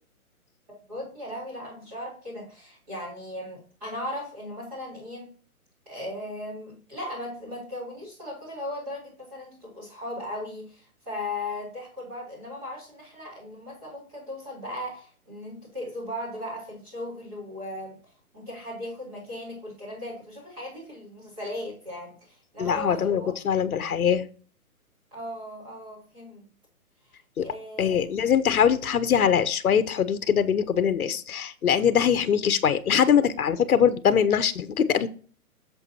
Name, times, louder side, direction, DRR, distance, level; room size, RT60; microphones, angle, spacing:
voice 1, 0.9-5.3 5.9-18.0 18.3-23.3 25.1-26.5 27.4-28.1, left 1 dB, 15° right, -6 dB, 3.5 m, -37 dB
voice 2, 22.6-24.3 27.4-27.5 27.8-35.1, left 8 dB, 75° left, 13 dB, 0.9 m, -22 dB
8.1 x 7.2 x 2.8 m, 0.40 s
hypercardioid pair, 180°, 44 cm